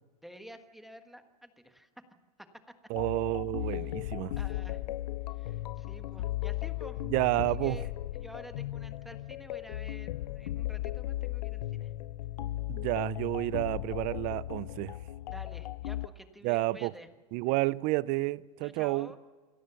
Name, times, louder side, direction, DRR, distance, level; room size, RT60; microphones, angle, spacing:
voice 1, 0.2-1.9 2.4-2.5 3.8-3.9 4.4-4.8 5.3-7.0 7.5-11.9 15.3-17.1 18.6-19.2, equal, ahead, 1.5 m, -50 dB
sound 1, 2.9-16.1, left 15 dB, 85° left, 0.6 m, -36 dB
voice 2, 2.9-4.3 7.1-7.8 12.7-15.0 16.4-16.9 17.3-19.1, right 20 dB, 40° right, 0.5 m, -30 dB
28.0 x 14.0 x 7.0 m
supercardioid pair, 140°, 20 cm